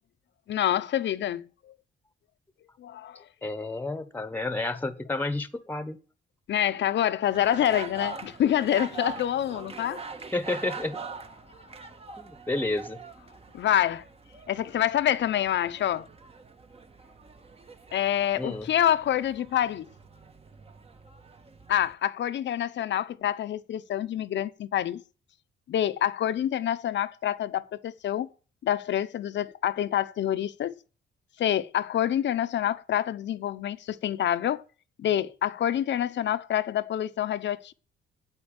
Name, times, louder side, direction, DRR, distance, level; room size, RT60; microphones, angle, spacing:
voice 1, 0.5-1.4 2.8-3.2 6.5-10.0 13.5-14.0 14.5-16.1 17.9-19.9 21.7-25.0 25.7-28.3 28.6-30.7 31.4-34.6 35.0-37.7, left 11 dB, 65° left, 0.9 m, -27 dB
voice 2, 3.4-6.0 10.3-11.0 12.2-13.0 18.4-18.7, left 2 dB, 10° left, 1.3 m, -31 dB
sound 1, 7.3-21.9, right 5 dB, 30° right, 1.5 m, -44 dB
9.0 x 8.5 x 8.9 m
cardioid pair, 90°, 20 cm